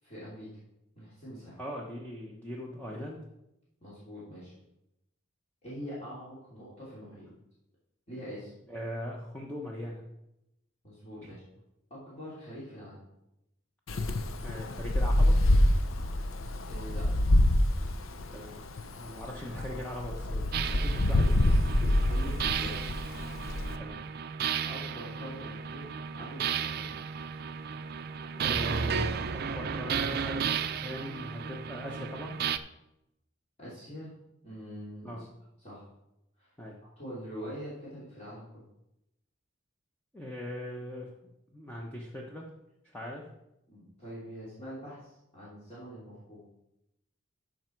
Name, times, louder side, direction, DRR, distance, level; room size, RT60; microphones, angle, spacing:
voice 1, 0.0-0.5 0.9-1.6 3.8-4.5 5.6-7.3 8.1-8.5 10.8-11.4 11.9-13.0 16.7-17.1 21.2-22.8 24.6-26.9 33.6-34.1 34.4-35.1 35.6-35.8 36.4-36.5 37.0-38.5 43.7-46.6, equal, 35° left, -10 dB, 3.3 m, -44 dB
voice 2, 1.6-3.2 8.7-10.0 11.2-11.4 14.4-15.4 18.3-18.6 19.0-21.6 23.8-24.1 28.4-32.4 35.0-35.3 36.6-36.8 40.1-41.1 41.5-42.5 42.8-43.2, equal, 10° left, -2 dB, 0.9 m, -40 dB
Wind, 13.9-23.7, left 1 dB, 80° left, 0.7 m, -26 dB
sound 1, 20.5-32.6, right 7 dB, 50° right, 0.4 m, -34 dB
13.5 x 5.2 x 4.6 m, 0.88 s
head